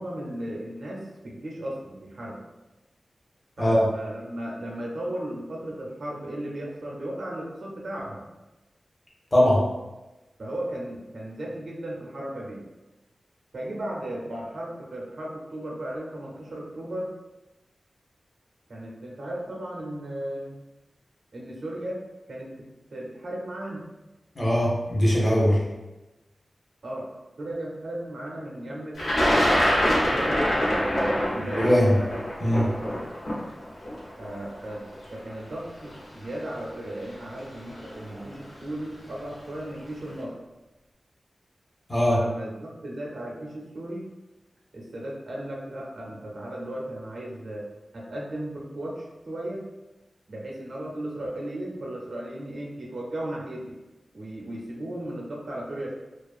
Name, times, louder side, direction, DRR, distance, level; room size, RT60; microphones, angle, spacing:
voice 1, 0.0-2.4 3.6-8.3 10.4-12.6 13.5-17.1 18.7-20.6 21.3-22.0 22.3-23.9 26.8-27.1 27.4-29.6 30.1-31.7 34.2-34.9 35.1-40.3 42.1-44.1 44.7-47.7 47.9-49.6 50.3-53.8 54.1-55.9, right 1 dB, 65° right, -2 dB, 0.6 m, -35 dB
voice 2, 9.3-9.6 24.4-25.6 31.5-31.9 32.4-32.7 41.9-42.2, equal, 20° left, -5 dB, 0.6 m, -20 dB
Thunder, 29.0-35.0 35.9-36.0 37.1-37.4 37.7-38.2, equal, 75° left, 0.7 m, -25 dB
2.5 x 2.3 x 2.4 m, 1.0 s
wide cardioid pair, 115°, 0 cm